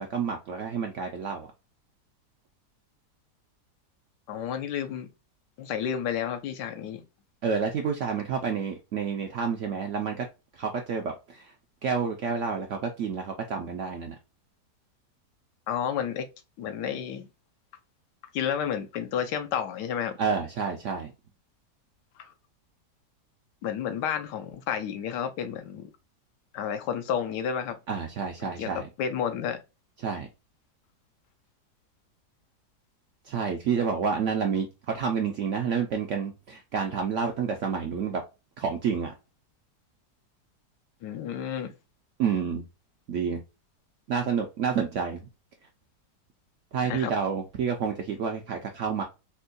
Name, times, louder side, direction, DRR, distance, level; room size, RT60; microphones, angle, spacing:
voice 1, 0.0-1.5 7.4-10.3 10.5-11.5 11.8-14.2 20.2-21.1 27.9-28.9 30.0-30.3 33.2-38.2 38.6-39.1 42.2-42.6 43.1-43.4 44.1-45.3 46.7-49.0, right 6 dB, 70° right, 0.7 m, -29 dB
voice 2, 4.3-5.1 5.6-7.0 15.7-16.3 16.6-17.2 18.3-20.2 22.2-22.3 23.6-25.9 26.5-27.8 28.4-28.7 29.0-29.6 41.0-41.7 46.8-47.1, left 8 dB, 85° left, 1.3 m, -31 dB
4.4 x 2.2 x 2.4 m
omnidirectional pair, 1.8 m